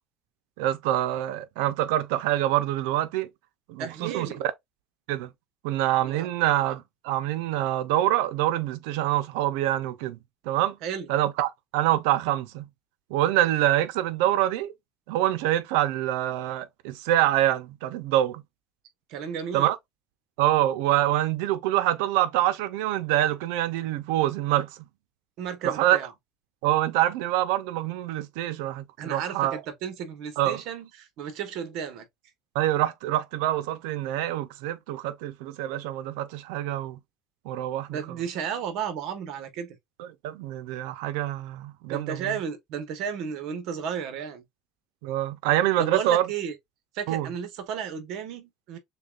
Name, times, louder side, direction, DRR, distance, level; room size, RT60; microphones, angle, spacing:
voice 1, 0.6-3.3 3.7-4.5 5.1-5.3 5.6-10.2 10.4-10.8 11.1-12.6 13.1-14.7 15.1-18.4 19.5-19.8 20.4-24.7 25.6-26.0 26.6-29.6 30.4-30.6 32.5-37.0 37.4-38.0 40.0-42.3 45.0-46.3 47.1-47.3, right 13 dB, 85° right, 0.6 m, -25 dB
voice 2, 3.8-4.4 6.0-6.3 10.8-11.1 19.1-19.7 25.4-26.1 29.0-32.1 37.9-39.8 41.9-44.4 45.8-46.6 46.9-48.8, right 7 dB, 55° right, 1.2 m, -33 dB
6.6 x 2.3 x 2.4 m
cardioid pair, 160°, 0 cm